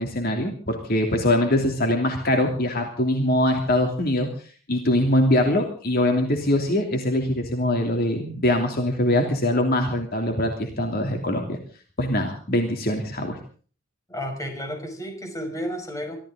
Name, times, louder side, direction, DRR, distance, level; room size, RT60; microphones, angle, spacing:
voice 1, 0.0-4.3 4.7-11.6 12.0-13.4, left 1 dB, 50° left, 3 dB, 3.0 m, -23 dB
voice 2, 14.1-16.2, equal, 15° left, 3 dB, 5.7 m, -32 dB
24.5 x 15.0 x 3.8 m, 0.41 s
head